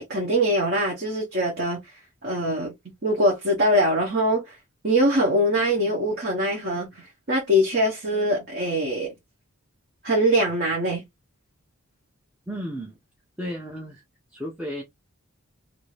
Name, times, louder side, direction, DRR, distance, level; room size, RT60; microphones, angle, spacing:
voice 1, 0.0-1.8 2.2-2.7 3.0-4.5 4.8-6.9 7.3-9.1 10.0-11.0, equal, 45° right, 0.9 m, -22 dB
voice 2, 12.5-13.0 13.4-14.0 14.3-14.8, equal, 5° right, 0.5 m, -33 dB
2.6 x 2.6 x 3.1 m
head